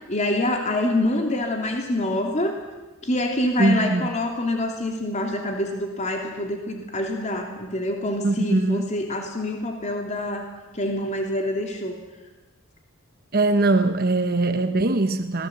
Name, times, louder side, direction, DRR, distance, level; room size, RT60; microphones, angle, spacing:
voice 1, 0.1-2.5 3.0-10.5 10.7-12.0, left 1 dB, 35° left, 2.9 m, -26 dB
voice 2, 3.6-4.1 8.2-8.9 13.3-15.5, right 2 dB, 45° right, 1.0 m, -21 dB
26.0 x 19.0 x 8.0 m
head